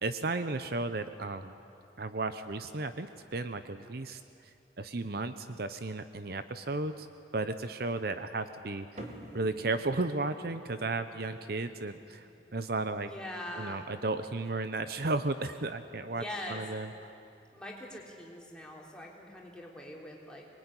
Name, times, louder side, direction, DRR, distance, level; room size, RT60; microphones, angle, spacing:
voice 1, 0.0-1.5 2.0-4.2 4.8-7.1 7.3-8.9 9.3-12.2 12.5-13.1 13.6-16.9, right 3 dB, 55° right, 10 dB, 0.8 m, -34 dB
sound 1, 9.0-15.7, right 1 dB, 40° right, 2.6 m, -53 dB
voice 2, 13.1-13.8 16.1-16.6 17.5-20.5, left 1 dB, 5° left, -2 dB, 3.6 m, -42 dB
24.0 x 21.0 x 9.9 m, 2.6 s
head